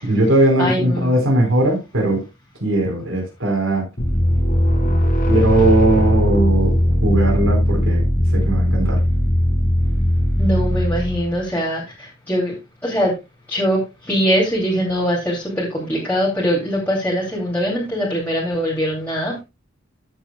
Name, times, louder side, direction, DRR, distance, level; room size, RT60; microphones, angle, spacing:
voice 1, 0.0-2.2 2.6-3.9 5.3-6.7 7.0-8.0 8.3-9.0, right 1 dB, 80° right, 4.4 m, -18 dB
voice 2, 0.6-1.1 10.4-12.5 12.8-13.1 13.5-19.4, equal, 10° left, 2.6 m, -22 dB
sound 1, 4.0-11.4, equal, 45° left, 1.8 m, -18 dB
13.5 x 7.2 x 2.2 m
head